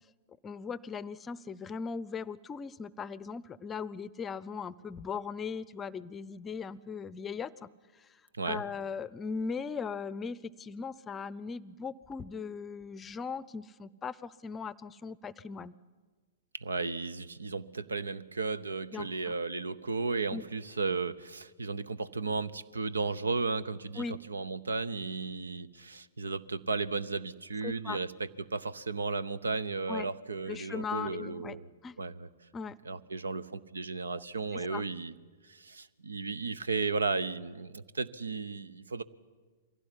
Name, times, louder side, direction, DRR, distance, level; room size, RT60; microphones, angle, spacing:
voice 1, 0.4-7.7 8.0-8.1 8.4-15.7 18.9-19.3 20.3-20.4 24.0-24.2 27.6-28.0 29.9-30.1 30.5-31.6 31.8-32.0 32.5-32.8 34.5-34.8, left 5 dB, 20° left, 19 dB, 0.6 m, -39 dB
voice 2, 16.5-31.6 32.0-32.3 32.8-35.1 35.4-39.0, right 4 dB, 85° right, 18 dB, 0.8 m, -34 dB
23.5 x 16.5 x 9.9 m, 1.4 s
hypercardioid pair, 115°, 0 cm